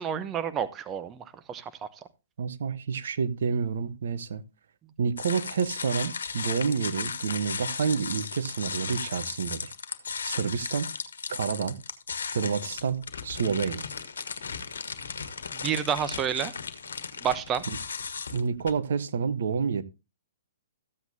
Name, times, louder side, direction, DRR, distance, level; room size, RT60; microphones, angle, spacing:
voice 1, 0.0-1.9 15.5-16.5 17.2-17.6, right 8 dB, 20° right, 0.8 m, -30 dB
voice 2, 2.4-4.4 5.0-9.7 10.2-10.9 11.3-11.8 12.3-13.9 18.3-19.8, right 6 dB, 65° right, 1.0 m, -29 dB
sound 1, 5.2-18.7, left 5 dB, 75° left, 1.4 m, -36 dB
14.0 x 8.1 x 2.7 m
hypercardioid pair, 125°, 0 cm